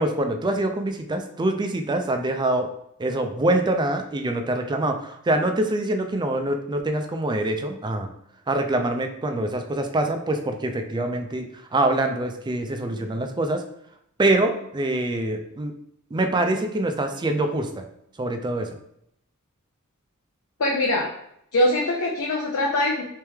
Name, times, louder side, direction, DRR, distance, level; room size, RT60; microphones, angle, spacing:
voice 1, 0.0-2.7 3.0-8.1 8.5-13.6 14.2-15.7 16.1-17.8 18.2-18.8, right 1 dB, 20° right, 6 dB, 0.4 m, -25 dB
voice 2, 20.6-21.1 21.5-23.0, left 1 dB, 85° left, -1 dB, 0.6 m, -22 dB
3.3 x 3.1 x 3.4 m, 0.74 s
head